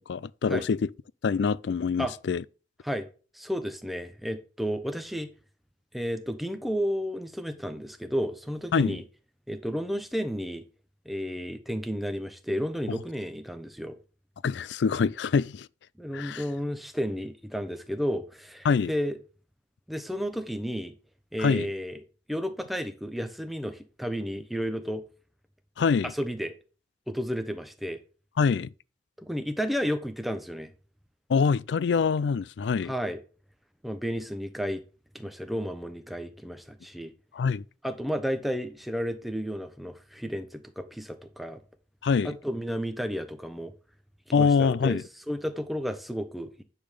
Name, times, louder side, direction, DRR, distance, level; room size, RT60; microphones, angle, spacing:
voice 1, 0.1-0.8 1.2-2.4 8.7-9.0 14.4-15.7 16.1-16.4 18.7-18.9 21.4-21.7 25.8-26.1 28.4-28.7 31.3-32.9 37.3-37.6 42.0-42.3 44.3-45.0, left 5 dB, 65° left, 0.4 m, -24 dB
voice 2, 3.3-5.3 5.9-9.0 9.5-10.6 11.0-14.0 16.0-19.2 19.9-20.9 21.3-22.0 22.3-25.0 26.0-26.5 27.1-28.0 29.2-30.7 32.8-33.2 33.8-34.8 35.1-37.1 37.8-41.6 42.2-43.7 44.3-46.6, equal, ahead, 0.8 m, -32 dB
10.5 x 3.8 x 6.7 m
head